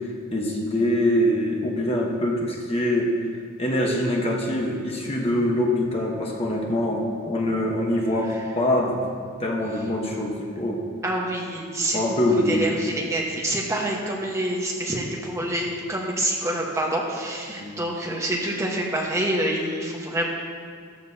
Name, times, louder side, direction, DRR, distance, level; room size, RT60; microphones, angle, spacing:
voice 1, 0.3-3.2 3.6-9.0 9.4-10.8 11.9-12.7 17.6-17.8, left 1 dB, 30° left, -1 dB, 1.1 m, -24 dB
voice 2, 11.0-12.2 12.5-20.3, right 1 dB, 15° right, -2 dB, 1.2 m, -27 dB
14.0 x 12.5 x 2.8 m, 2.1 s
head